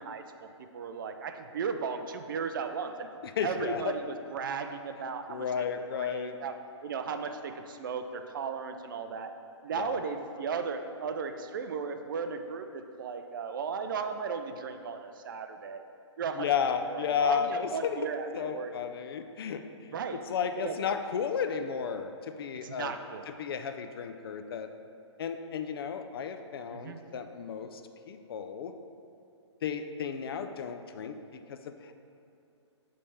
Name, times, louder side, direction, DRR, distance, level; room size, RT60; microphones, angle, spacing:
voice 1, 0.0-3.1 3.4-5.7 5.9-9.3 9.6-15.8 16.2-16.5 16.8-18.7 19.9-20.2 20.5-20.8 22.6-23.3 26.7-27.0, right 5 dB, 45° right, 7 dB, 0.4 m, -36 dB
voice 2, 3.4-3.9 5.3-6.4 9.7-10.0 16.4-18.0 18.3-19.9 20.3-22.9 23.4-24.7 25.2-27.8 28.1-28.7 29.6-31.2 31.5-31.6, left 7 dB, 55° left, 8 dB, 0.4 m, -33 dB
5.3 x 3.3 x 5.6 m, 2.7 s
hypercardioid pair, 160°, 15 cm